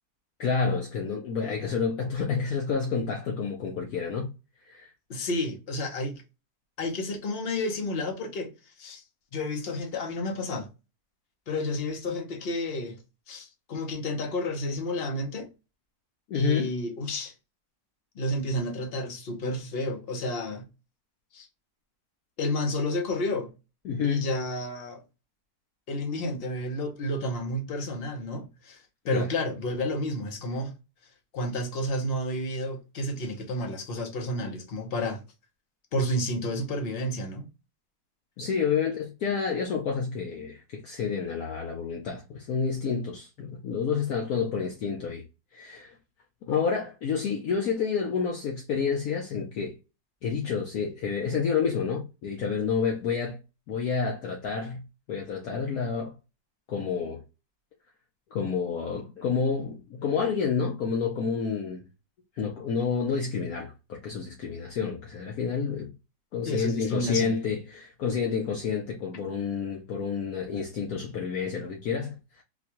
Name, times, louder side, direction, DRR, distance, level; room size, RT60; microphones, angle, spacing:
voice 1, 0.4-4.3 4.7-4.9 16.3-16.7 23.8-24.3 29.1-29.3 38.4-45.2 45.5-46.0 46.5-49.8 50.2-53.4 53.7-54.8 55.1-56.1 56.7-57.2 58.3-61.8 62.3-65.9 66.3-72.4, left 6 dB, 65° left, 1.1 m, -29 dB
voice 2, 5.1-6.2 6.8-8.5 8.8-9.0 9.3-10.7 11.5-13.0 13.3-15.5 16.3-17.3 18.1-20.7 21.3-21.5 22.4-23.5 24.0-25.0 25.9-28.8 29.1-30.7 31.3-35.2 35.9-37.5 66.5-67.3, left 1 dB, 45° left, 0.8 m, -31 dB
4.1 x 2.3 x 2.9 m
omnidirectional pair, 1.9 m